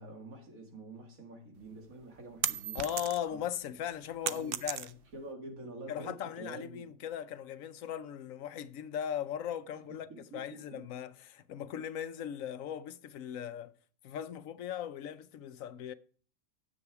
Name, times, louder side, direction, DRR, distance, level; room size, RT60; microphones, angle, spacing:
voice 1, 0.0-2.9 3.3-3.4 4.2-4.6 5.1-6.9 10.1-10.9, right 2 dB, 80° right, 2.4 m, -47 dB
sound 1, 1.6-3.4 3.8-5.3, right 10 dB, 60° right, 0.6 m, -36 dB
voice 2, 2.7-5.0 5.9-13.7 14.0-15.9, left 9 dB, 75° left, 1.1 m, -38 dB
9.9 x 7.7 x 4.7 m
omnidirectional pair, 1.4 m